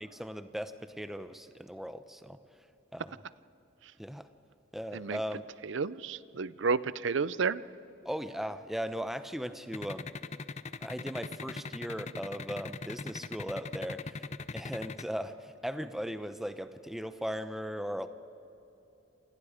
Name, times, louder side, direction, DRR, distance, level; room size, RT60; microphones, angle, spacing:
voice 1, 0.0-2.4 2.9-3.1 4.0-4.3 4.7-5.4 8.0-10.1 10.8-14.3 14.5-18.1, equal, ahead, 10 dB, 0.7 m, -38 dB
voice 2, 5.6-7.6, right 5 dB, 70° right, 18 dB, 0.6 m, -31 dB
sound 1, 9.7-15.0, left 4 dB, 35° left, 0.6 m, -39 dB
28.0 x 27.5 x 5.0 m, 2.9 s
head